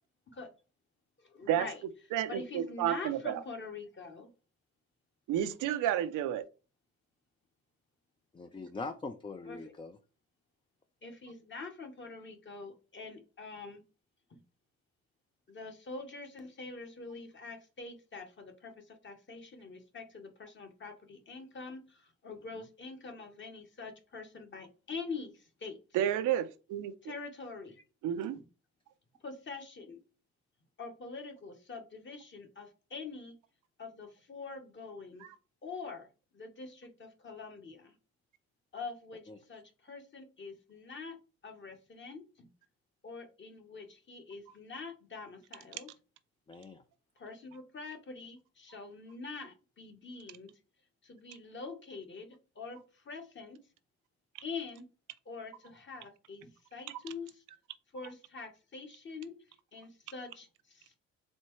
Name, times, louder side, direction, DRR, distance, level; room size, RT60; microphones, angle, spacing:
voice 1, 1.2-1.8 2.3-4.3 9.5-9.6 11.0-13.8 14.3-14.4 15.5-25.8 27.0-27.8 28.3-28.4 29.2-30.0 30.8-33.3 33.8-35.2 35.6-36.1 36.3-37.9 38.7-39.2 39.5-41.2 41.4-42.5 43.0-45.9 47.2-50.5 51.0-53.6 54.4-54.8 55.2-57.4 57.9-59.3 59.7-61.0, left 4 dB, 40° left, 1.2 m, -45 dB
voice 2, 2.1-3.4 5.3-6.4 25.9-26.9 28.0-28.4 35.2-35.3 56.9-57.0, right 11 dB, 85° right, 0.6 m, -31 dB
voice 3, 8.3-10.0 39.3-39.4 46.5-46.8, left 3 dB, 15° left, 0.4 m, -42 dB
4.3 x 3.5 x 3.1 m
cardioid pair, 90°, 30 cm